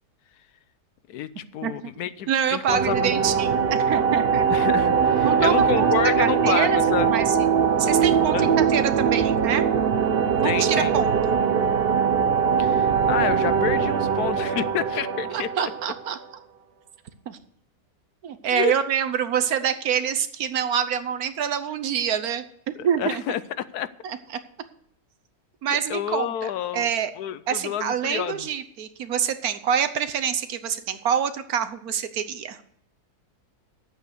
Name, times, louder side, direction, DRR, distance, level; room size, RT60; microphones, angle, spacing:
voice 1, 1.1-3.2 4.5-7.1 8.3-8.5 10.4-11.0 12.6-15.5 18.5-18.7 22.8-23.9 25.7-26.9 27.2-28.5, left 10 dB, 80° left, 1.2 m, -29 dB
voice 2, 2.3-4.5 5.2-6.8 7.1-7.5 7.8-9.6 10.4-11.3 15.3-16.2 17.3-17.4 18.2-23.2 24.0-24.2 25.6-27.1 27.5-32.6, right 8 dB, 70° right, 1.3 m, -26 dB
sound 1, 2.7-16.2, right 6 dB, 45° right, 0.9 m, -22 dB
10.5 x 8.1 x 6.7 m
omnidirectional pair, 1.7 m